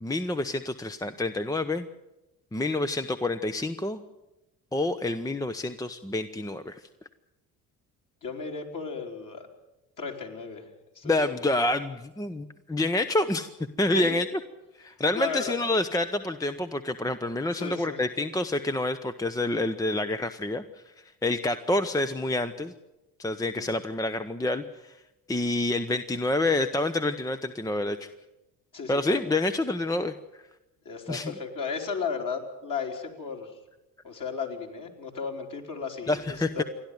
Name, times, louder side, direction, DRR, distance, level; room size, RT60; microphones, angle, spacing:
voice 1, 0.0-1.9 2.5-4.0 4.7-6.8 11.0-13.5 13.8-14.3 14.8-20.6 21.2-22.7 23.2-24.9 25.3-28.1 28.9-30.1 31.1-31.3 36.1-36.5, left 2 dB, 5° left, 10 dB, 0.9 m, -28 dB
voice 2, 8.2-9.4 10.0-10.7 11.0-11.5 13.9-14.2 15.1-15.6 17.5-18.0 23.5-23.7 28.7-29.3 30.9-33.5 34.0-36.6, left 5 dB, 40° left, 2 dB, 4.0 m, -34 dB
29.0 x 11.5 x 9.5 m, 0.98 s
figure-of-eight pair, 55°, 49 cm